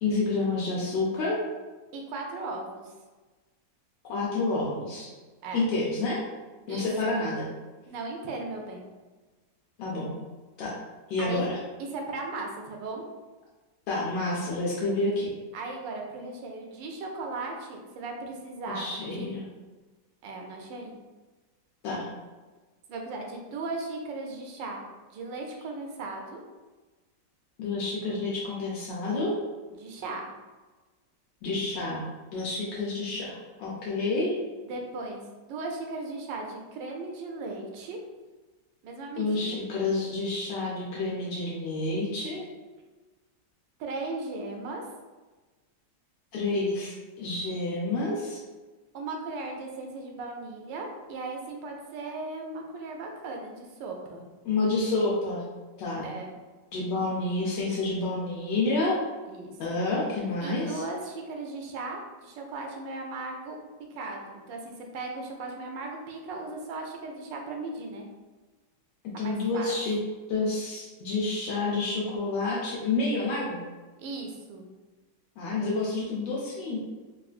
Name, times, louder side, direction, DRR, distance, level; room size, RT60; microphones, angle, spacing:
voice 1, 0.0-1.4 4.0-5.1 5.5-6.2 6.7-7.5 9.8-10.1 10.6-10.7 11.1-11.6 13.9-15.3 18.7-19.4 21.8-22.1 27.6-29.3 31.4-32.1 32.3-34.4 39.2-42.4 46.3-48.4 54.4-55.5 55.8-56.1 56.7-59.0 59.6-60.8 69.2-70.0 70.3-73.6 75.4-76.8, left 3 dB, 80° left, -5 dB, 1.3 m, -29 dB
voice 2, 1.9-2.9 5.4-5.6 6.7-7.2 7.9-8.8 11.2-11.5 11.8-13.0 15.5-18.9 19.1-19.3 20.2-20.9 22.9-24.8 25.1-26.4 29.8-30.3 34.6-35.2 35.5-38.0 38.8-39.6 43.8-44.8 48.9-54.2 56.0-56.3 59.3-59.5 60.4-63.6 63.9-68.1 69.1-69.7 74.0-74.7, right 3 dB, 90° right, 1 dB, 1.3 m, -37 dB
3.7 x 2.3 x 2.4 m, 1.3 s
omnidirectional pair, 1.9 m